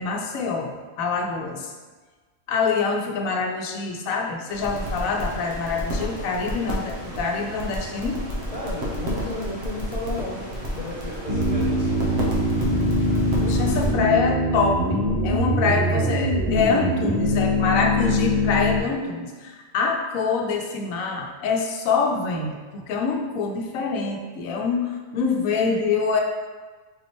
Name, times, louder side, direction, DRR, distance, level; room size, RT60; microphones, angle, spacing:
voice 1, 0.0-1.7 2.5-8.2 13.4-26.2, left 5 dB, 85° left, 2 dB, 1.1 m, -25 dB
sound 1, 4.5-13.9, equal, 55° right, 1.2 m, -31 dB
voice 2, 8.5-10.4 10.8-12.1, left 2 dB, 50° left, -6 dB, 0.4 m, -33 dB
sound 2, 11.3-18.8, equal, 35° right, 0.7 m, -23 dB
4.1 x 4.1 x 3.0 m, 1.3 s
omnidirectional pair, 1.4 m